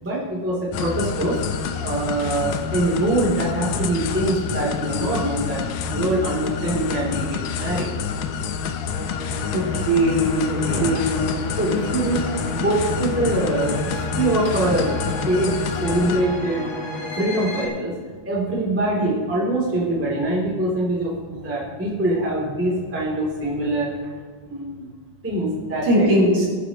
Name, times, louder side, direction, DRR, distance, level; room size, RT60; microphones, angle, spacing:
voice 1, 0.0-1.4 1.8-7.9 10.5-11.0 11.5-12.2 12.6-16.6 17.1-17.9 18.2-23.9 24.5-24.9 25.2-26.1, right 1 dB, 5° right, -4 dB, 2.3 m, -24 dB
sound 1, 0.7-16.2, left 6 dB, 90° left, 1.7 m, -28 dB
sound 2, 8.8-17.7, left 1 dB, 65° left, 3.9 m, -32 dB
voice 2, 9.5-10.4 10.8-11.2 25.8-26.5, equal, 75° right, -7 dB, 6.2 m, -19 dB
21.5 x 9.7 x 3.1 m, 1.5 s
omnidirectional pair, 4.4 m